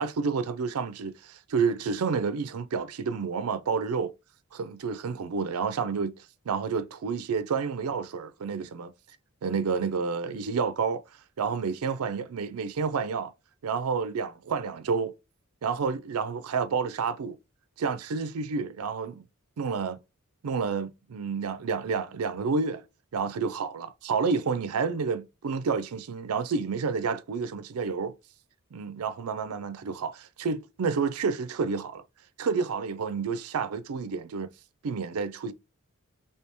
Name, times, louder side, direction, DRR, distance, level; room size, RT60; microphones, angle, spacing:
voice 1, 0.0-4.1 4.5-6.1 6.5-8.9 9.4-11.0 11.4-13.3 13.6-15.1 15.6-17.4 17.8-19.2 19.6-20.0 20.4-22.8 23.1-28.1 28.7-32.0 32.4-34.5 34.8-35.5, right 5 dB, 85° right, 0.4 m, -29 dB
3.3 x 2.8 x 2.9 m
head